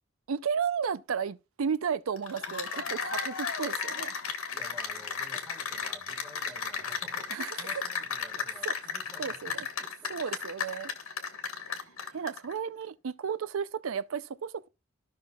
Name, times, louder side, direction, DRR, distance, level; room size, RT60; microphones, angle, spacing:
voice 1, 0.3-4.1 7.3-7.5 8.7-8.8 9.2-9.7 10.1-10.9 11.7-11.8 12.1-14.7, right 6 dB, 80° right, 0.5 m, -33 dB
Cheering / Applause, 2.2-12.5, left 5 dB, 85° left, 1.5 m, -35 dB
voice 2, 4.5-10.2, left 1 dB, ahead, 1.5 m, -51 dB
14.0 x 5.8 x 2.3 m
head